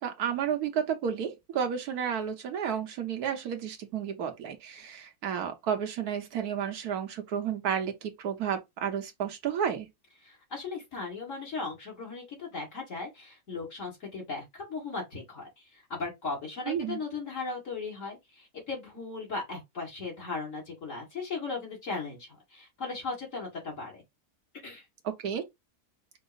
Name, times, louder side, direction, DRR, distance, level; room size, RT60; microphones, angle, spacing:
voice 1, 0.0-9.9 16.7-17.0 25.0-25.4, right 8 dB, 85° right, 1.4 m, -32 dB
voice 2, 10.2-24.0 24.6-24.9, left 4 dB, 55° left, 1.9 m, -37 dB
5.4 x 2.0 x 3.9 m
omnidirectional pair, 1.6 m